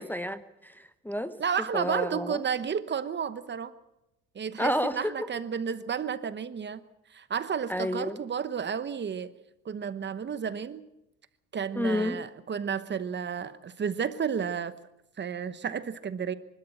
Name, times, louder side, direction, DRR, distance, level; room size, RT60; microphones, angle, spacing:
voice 1, 0.0-1.3 1.7-2.4 4.6-5.1 7.7-8.2 11.8-12.2, left 1 dB, 5° left, 9 dB, 0.9 m, -30 dB
voice 2, 1.4-3.7 4.3-6.8 7.1-9.3 9.6-10.8 11.5-14.7 15.2-16.3, right 7 dB, 35° right, 14 dB, 1.1 m, -32 dB
24.5 x 12.5 x 8.8 m, 0.89 s
cardioid pair, 125°, 32 cm